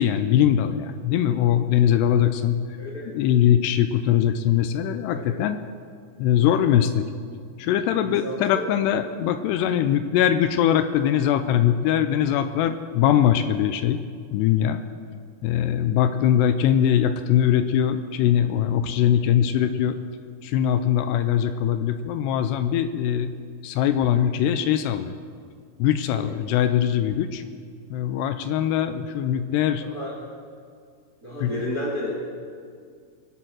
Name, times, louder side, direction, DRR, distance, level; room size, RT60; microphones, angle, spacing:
voice 1, 0.0-2.6 3.1-5.6 6.2-7.1 7.6-14.0 14.3-14.8 15.4-20.0 20.4-23.3 23.6-25.1 25.8-27.4 27.9-29.8 31.4-31.5, left 10 dB, 80° left, 10 dB, 2.6 m, -21 dB
voice 2, 5.1-5.4 8.0-8.7 26.1-26.4 29.8-30.1 31.2-32.3, equal, 35° right, -3 dB, 1.5 m, -32 dB
23.0 x 7.9 x 6.3 m, 2.2 s
omnidirectional pair, 5.0 m